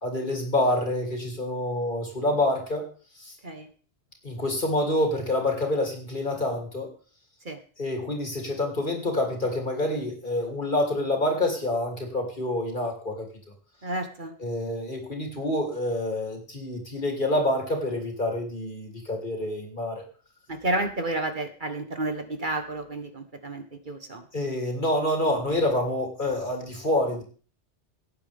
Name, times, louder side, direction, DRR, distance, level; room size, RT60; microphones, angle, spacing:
voice 1, 0.0-2.8 3.2-3.3 4.2-6.9 7.8-13.3 14.4-20.0 24.3-27.2, left 1 dB, 45° left, 1 dB, 3.3 m, -27 dB
voice 2, 13.8-14.3 20.5-24.2, right 2 dB, 45° right, 7 dB, 1.4 m, -31 dB
18.0 x 9.1 x 3.5 m, 0.40 s
omnidirectional pair, 1.2 m